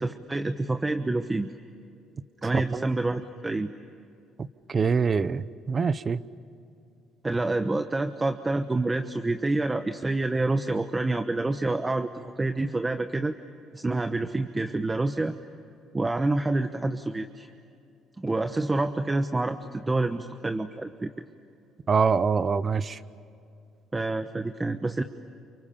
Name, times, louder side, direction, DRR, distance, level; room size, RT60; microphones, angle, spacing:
voice 1, 0.0-1.5 2.4-3.7 7.2-13.4 13.7-15.3 15.9-17.5 18.2-21.1 23.9-25.0, right 2 dB, 20° right, 8 dB, 1.1 m, -27 dB
voice 2, 4.7-6.2 21.9-23.0, right 5 dB, 35° right, 16 dB, 0.9 m, -24 dB
30.0 x 28.0 x 7.0 m, 2.5 s
cardioid pair, 95°, 0 cm